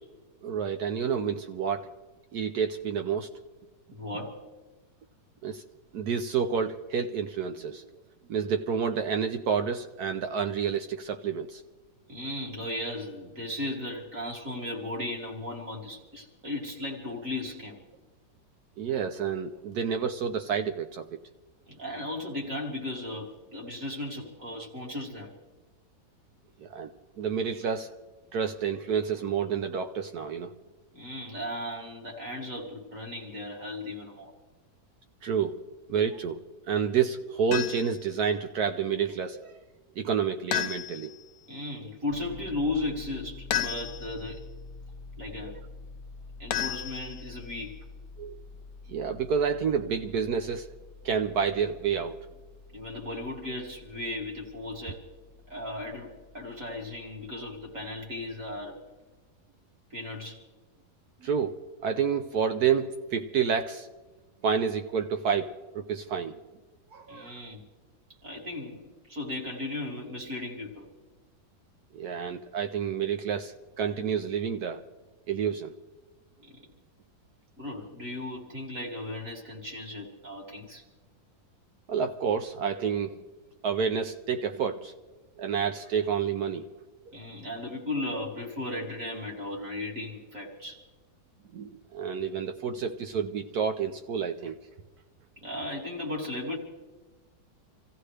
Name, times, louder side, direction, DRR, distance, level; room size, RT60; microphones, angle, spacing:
voice 1, 0.4-1.9 2.3-3.3 5.4-5.6 5.9-7.9 8.3-11.6 18.8-21.1 26.6-26.9 27.2-27.9 28.3-30.5 35.2-35.6 35.9-36.4 36.6-39.6 40.0-41.1 45.4-45.5 48.2-48.4 48.9-50.7 51.0-52.1 61.2-61.6 61.8-63.9 64.4-66.4 66.9-67.4 71.9-74.8 75.3-75.7 81.9-83.2 83.6-84.9 85.4-86.6 87.1-87.2 91.5-94.6, right 7 dB, 65° right, 7 dB, 1.0 m, -29 dB
voice 2, 3.9-4.4 12.1-17.8 21.7-25.3 30.9-34.3 41.5-44.4 45.2-45.6 46.4-47.8 52.7-55.0 55.5-58.8 59.9-60.4 67.1-67.6 68.2-70.9 76.4-76.6 77.6-80.8 87.1-90.8 95.4-96.6, left 2 dB, 40° right, -1 dB, 2.9 m, -36 dB
sound 1, 37.5-38.0 40.5-41.2 43.5-44.2 46.5-47.4, left 10 dB, 75° left, 1.3 m, -32 dB
Piano, 42.1-58.8, left 3 dB, 55° left, 0.9 m, -48 dB
27.0 x 15.0 x 3.3 m, 1.2 s
omnidirectional pair, 2.1 m